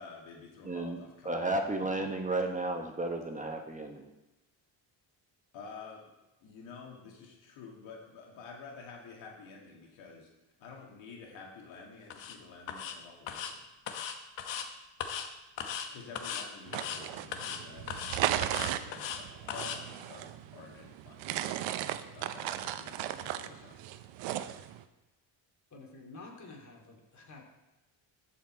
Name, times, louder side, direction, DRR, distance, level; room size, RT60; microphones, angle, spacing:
voice 1, 0.0-2.2 5.5-6.0 6.4-10.3 10.6-13.6 15.8-18.0 18.4-21.2 22.1-23.8, left 4 dB, 90° left, -1 dB, 2.2 m, -49 dB
voice 2, 0.6-1.0 1.2-4.0, right 2 dB, 15° right, 3 dB, 1.2 m, -33 dB
sound 1, 12.1-12.4 12.7-13.0 13.3-13.5 13.9-14.7 15.0-15.3 15.6-15.9 16.2-16.5 16.7-17.0 17.3-17.6 17.9-19.2 19.5-19.8, left 8 dB, 70° left, 1.2 m, -38 dB
sound 2, 16.7-24.8, right 12 dB, 80° right, 0.7 m, -36 dB
voice 3, 25.7-27.4, left 3 dB, 40° left, 0 dB, 2.8 m, -49 dB
14.0 x 5.7 x 4.5 m, 1.0 s
cardioid pair, 90°, 45 cm